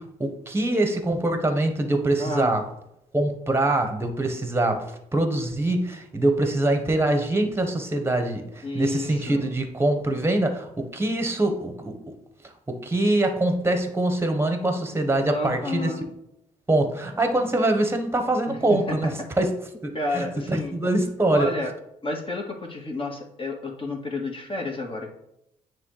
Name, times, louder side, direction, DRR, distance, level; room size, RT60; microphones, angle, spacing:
voice 1, 0.0-2.6 3.1-4.8 5.1-12.1 12.7-15.9 16.7-19.1 19.4-19.5 19.8-21.5, right 2 dB, 15° right, 5 dB, 1.3 m, -24 dB
voice 2, 2.2-2.6 8.6-9.5 15.3-16.1 18.5-19.1 19.9-20.7 21.3-21.7 22.0-25.1, left 2 dB, 30° left, 1 dB, 1.7 m, -31 dB
9.5 x 3.2 x 3.3 m, 0.82 s
hypercardioid pair, 50°, 18 cm